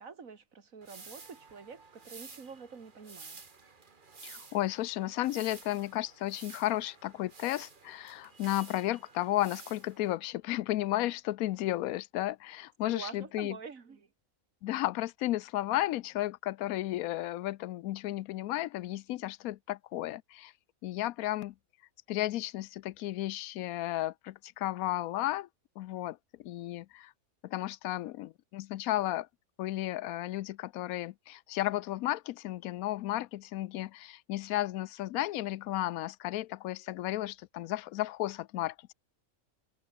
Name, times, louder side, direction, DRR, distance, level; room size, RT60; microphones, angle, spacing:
voice 1, 0.0-3.4 12.8-14.1, right 5 dB, 70° right, 2.4 m, -47 dB
sound 1, 0.8-10.2, right 4 dB, 35° right, 1.7 m, -52 dB
voice 2, 4.2-13.6 14.6-20.5 20.8-21.5 22.1-25.5 25.8-27.1 27.4-29.3 29.6-38.9, left 15 dB, 85° left, 1.0 m, -33 dB
omnidirectional pair, 1.5 m